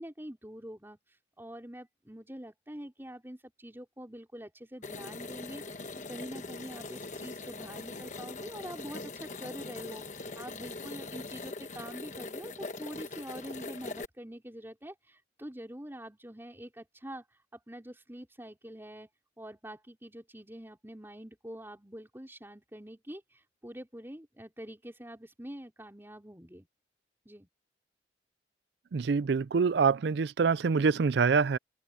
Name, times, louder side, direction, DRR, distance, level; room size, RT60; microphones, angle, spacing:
voice 1, 0.0-19.1 19.4-26.7 27.2-27.5, equal, 15° right, 4.3 m, -45 dB
sound 1, 4.8-14.1, left 3 dB, 40° left, 1.1 m, -42 dB
voice 2, 28.9-31.6, right 5 dB, 65° right, 0.4 m, -25 dB
head